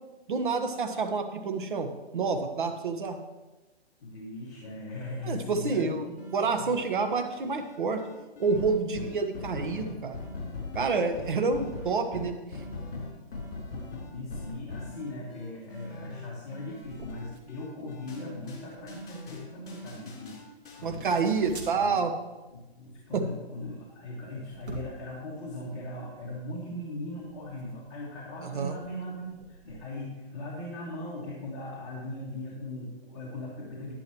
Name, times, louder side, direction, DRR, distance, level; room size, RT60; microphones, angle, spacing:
voice 1, 0.3-3.2 5.2-6.0 6.3-8.0 8.4-10.2 10.7-12.4 20.8-22.1 23.1-23.2 28.4-28.7, right 4 dB, 50° right, 5 dB, 1.3 m, -28 dB
voice 2, 4.0-6.1 14.1-20.3 20.7-21.1 21.8-22.0 22.5-33.9, left 1 dB, 25° left, -7 dB, 2.1 m, -39 dB
sound 1, 6.2-21.4, left 3 dB, 50° left, 3.6 m, -41 dB
sound 2, 14.1-29.8, right 2 dB, 80° right, 2.5 m, -50 dB
11.0 x 10.5 x 3.1 m, 1.1 s
hypercardioid pair, 165°, 33 cm